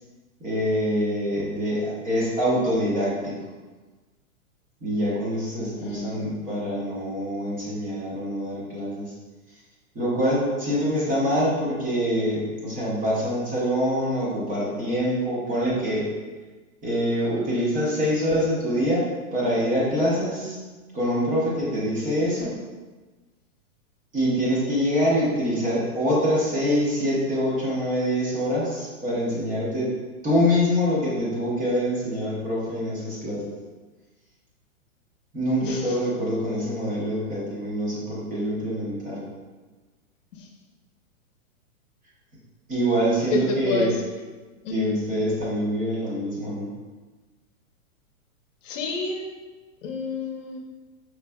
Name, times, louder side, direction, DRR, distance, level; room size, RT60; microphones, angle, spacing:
voice 1, 0.4-3.4 4.8-9.1 9.9-16.1 16.8-20.6 20.9-22.6 24.1-29.9 30.2-33.5 35.3-39.3 42.7-43.9 44.7-46.7, equal, 20° right, -6 dB, 1.0 m, -25 dB
voice 2, 5.8-6.3 35.6-36.0 40.4-40.5 43.3-43.9 44.6-44.9 48.6-49.2 49.8-50.6, left 4 dB, 70° left, 1 dB, 0.8 m, -29 dB
4.8 x 3.2 x 2.2 m, 1.3 s
hypercardioid pair, 145°, 40 cm